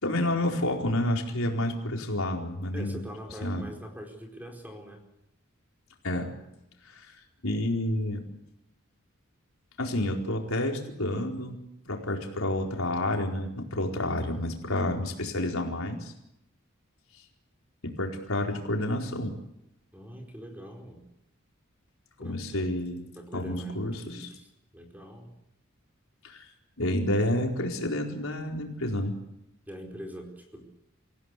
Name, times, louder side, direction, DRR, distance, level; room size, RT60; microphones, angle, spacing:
voice 1, 0.0-3.0 3.4-3.6 6.0-6.3 6.8-8.3 9.8-11.6 11.9-16.1 17.8-19.3 22.2-23.0 23.3-24.3 26.2-26.5 26.8-29.2, left 1 dB, 80° left, 1 dB, 4.5 m, -29 dB
voice 2, 2.7-5.0 19.9-21.1 22.2-22.7 23.1-24.5 24.7-25.4 29.7-30.7, right 1 dB, 10° right, 2 dB, 4.4 m, -43 dB
28.0 x 16.5 x 8.4 m, 0.85 s
head